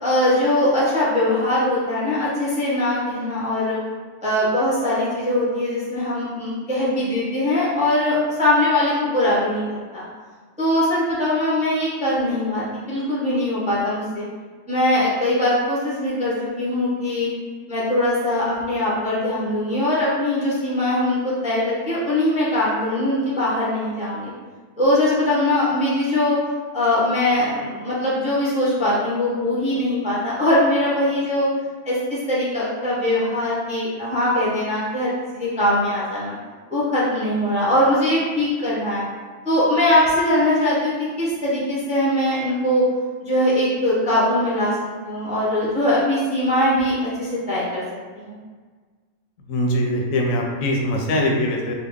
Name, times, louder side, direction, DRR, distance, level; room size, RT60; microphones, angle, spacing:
voice 1, 0.0-3.8 4.2-10.0 10.6-14.2 14.7-17.3 17.7-24.3 24.8-26.4 26.7-31.5 31.8-36.4 36.7-39.0 39.4-40.9 41.2-42.9 43.2-44.8 45.0-47.8 48.2-48.4, left 1 dB, 10° right, -7 dB, 0.5 m, -21 dB
voice 2, 49.5-51.7, left 1 dB, 85° left, 0 dB, 1.0 m, -22 dB
3.0 x 2.3 x 3.4 m, 1.5 s
omnidirectional pair, 1.4 m